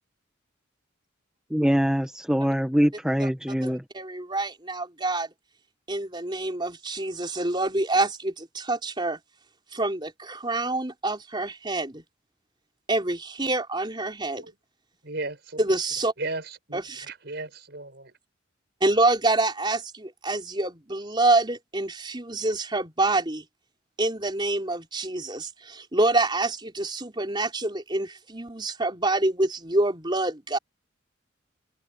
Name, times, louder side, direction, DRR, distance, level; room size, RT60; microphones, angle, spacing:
voice 1, 1.5-3.8, equal, 5° right, 1.0 m, -23 dB
voice 2, 3.6-5.3 5.9-9.2 9.7-12.0 12.9-14.5 15.6-16.1 16.7-17.1 18.8-23.4 24.0-30.6, right 2 dB, 25° right, 4.3 m, -26 dB
voice 3, 15.0-15.6 16.2-16.8 17.1-18.1, right 2 dB, 55° right, 6.4 m, -35 dB
head